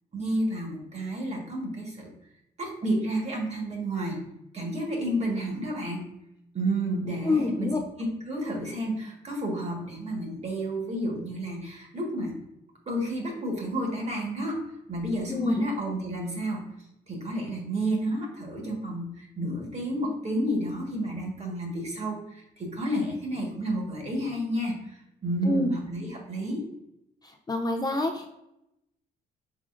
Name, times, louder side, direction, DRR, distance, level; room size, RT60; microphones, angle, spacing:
voice 1, 0.1-2.1 2.6-4.2 4.5-6.0 6.5-12.3 12.9-14.6 14.9-16.7 17.1-26.6, right 1 dB, 40° right, 0 dB, 1.4 m, -31 dB
voice 2, 7.3-7.8 15.3-15.6 25.4-25.7 27.5-28.3, left 2 dB, 20° left, 3 dB, 0.5 m, -26 dB
4.9 x 3.6 x 2.5 m, 0.84 s
cardioid pair, 80°, 18 cm